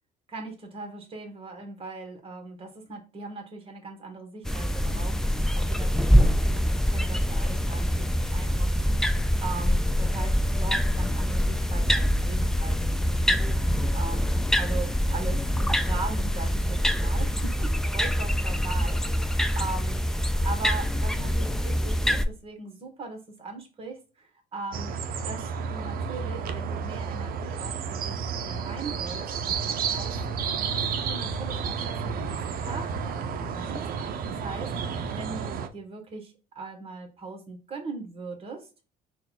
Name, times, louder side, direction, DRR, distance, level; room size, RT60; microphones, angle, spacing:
voice 1, 0.3-20.0 20.4-24.9 25.2-25.4 25.7-30.7 31.1-33.8 34.3-34.7 35.1-38.9, right 3 dB, 35° right, 4 dB, 1.4 m, -40 dB
sound 1, 4.5-22.2, equal, 5° left, 0.4 m, -25 dB
sound 2, 24.7-35.7, right 6 dB, 60° right, 0.6 m, -31 dB
3.9 x 2.4 x 4.2 m, 0.32 s
cardioid pair, 110°, 17 cm